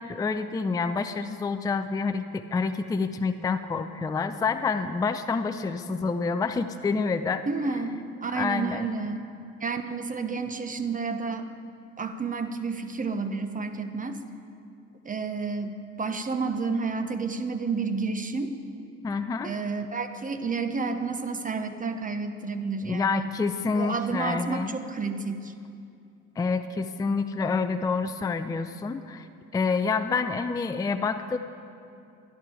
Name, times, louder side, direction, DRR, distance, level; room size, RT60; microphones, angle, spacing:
voice 1, 0.0-7.4 8.3-8.9 19.0-19.5 22.8-24.7 26.4-29.3 29.5-31.4, left 4 dB, 10° left, 8 dB, 0.4 m, -28 dB
voice 2, 7.5-9.2 9.6-11.5 12.0-14.2 15.0-18.6 19.4-23.3 23.7-25.5, right 4 dB, 25° right, 8 dB, 0.7 m, -30 dB
11.5 x 11.5 x 4.7 m, 2.5 s
supercardioid pair, 80°, 30 cm